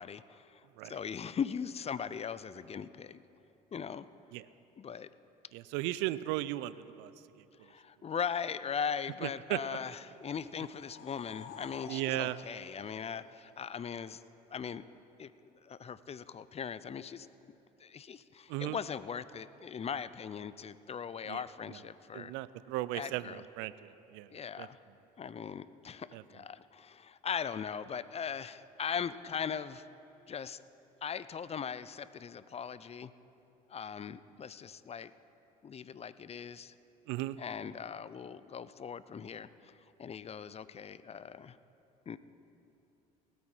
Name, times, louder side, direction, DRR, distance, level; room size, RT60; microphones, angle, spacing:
voice 1, 0.0-0.6 0.9-3.2 3.7-4.1 4.8-5.1 7.6-14.2 14.5-14.8 15.2-17.3 17.8-22.3 22.9-23.4 24.3-24.8 25.2-29.9 30.3-30.6 31.0-33.1 33.7-35.1 35.6-36.7 37.4-39.7 40.0-41.6 42.1-42.2, left 7 dB, 30° left, 16 dB, 0.5 m, -39 dB
voice 2, 5.5-7.1 9.2-9.6 11.9-12.4 18.5-18.8 21.3-21.4 21.7-21.8 22.1-24.3 24.6-24.7 26.1-26.2 37.1-37.4, right 16 dB, 75° right, 16 dB, 0.5 m, -36 dB
sound 1, 10.2-13.8, left 6 dB, 55° left, 1.0 m, -52 dB
19.0 x 8.4 x 4.5 m, 2.9 s
hypercardioid pair, 60°, 19 cm